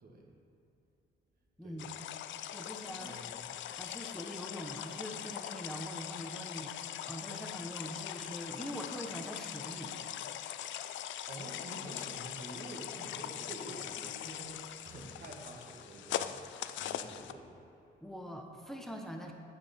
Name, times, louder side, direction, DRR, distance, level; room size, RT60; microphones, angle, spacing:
voice 1, 1.6-1.9 2.5-3.2 3.7-9.9 18.0-19.3, equal, ahead, 2 dB, 0.9 m, -43 dB
sound 1, 1.8-17.3, left 11 dB, 70° left, 0.4 m, -41 dB
voice 2, 3.0-3.5 11.3-17.6, right 2 dB, 50° right, 0 dB, 1.7 m, -48 dB
8.8 x 7.4 x 4.2 m, 2.8 s
cardioid pair, 90°, 20 cm